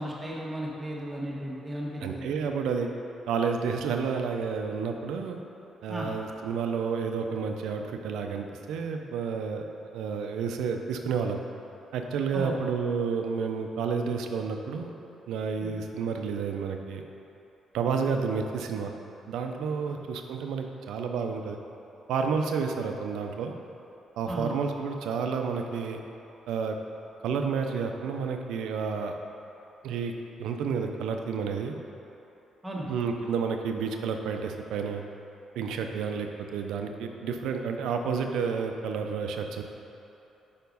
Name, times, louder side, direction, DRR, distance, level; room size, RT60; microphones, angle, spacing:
voice 1, 0.0-2.4 5.9-6.1 12.3-12.6 15.6-15.7 19.9-20.0 24.3-24.5 32.6-32.9, right 1 dB, 10° right, -5 dB, 1.3 m, -35 dB
voice 2, 2.0-2.9 3.3-5.4 5.8-9.6 9.9-11.4 11.9-14.9 15.3-17.0 17.7-18.9 19.3-21.6 22.1-23.6 24.2-26.0 26.5-26.8 27.2-29.2 29.8-30.1 30.4-31.8 32.9-35.0 35.6-39.6, right 5 dB, 85° right, 4 dB, 0.5 m, -30 dB
5.1 x 4.6 x 5.3 m, 3.0 s
cardioid pair, 90°, 0 cm